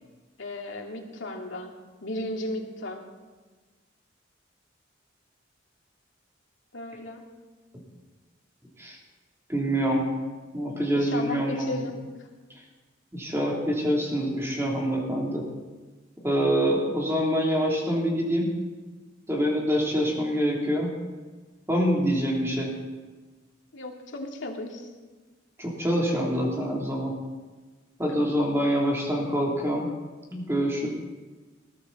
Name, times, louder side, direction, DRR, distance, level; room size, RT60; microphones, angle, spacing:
voice 1, 0.4-1.7 2.0-3.0 6.7-7.2 10.9-12.0 23.7-24.9 28.1-28.2, left 1 dB, 80° left, 1 dB, 2.3 m, -35 dB
voice 2, 9.5-10.1 10.5-11.8 13.1-15.4 16.2-18.5 19.3-20.9 21.7-22.7 25.6-27.1 28.0-29.8 30.3-30.9, equal, 15° right, -2 dB, 3.1 m, -25 dB
20.0 x 13.5 x 4.1 m, 1.3 s
head